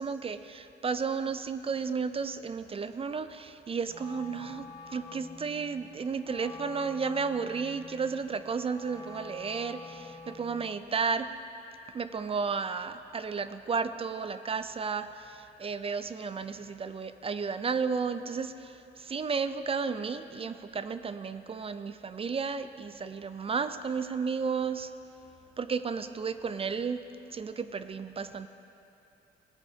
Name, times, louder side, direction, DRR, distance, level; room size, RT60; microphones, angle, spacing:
voice 1, 0.0-11.3 11.9-24.9 25.6-27.0 27.3-28.5, right 5 dB, 30° right, 11 dB, 0.4 m, -33 dB
Wind instrument woodwind instrument, 3.9-10.6, left 4 dB, 20° left, 1.0 m, -47 dB
17.5 x 8.2 x 2.7 m, 2.9 s
cardioid pair, 90°, 20 cm